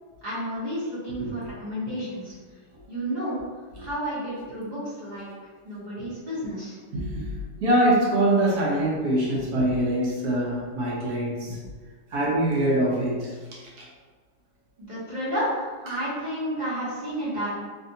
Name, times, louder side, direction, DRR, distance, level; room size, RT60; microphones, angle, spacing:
voice 1, 0.2-2.3 2.9-3.4 3.8-5.3 5.6-6.7 14.8-17.5, equal, 30° right, -9 dB, 1.2 m, -31 dB
voice 2, 6.9-7.3 7.6-11.6 12.1-13.3, right 1 dB, 75° right, -5 dB, 1.4 m, -23 dB
3.3 x 2.5 x 2.7 m, 1.4 s
omnidirectional pair, 1.7 m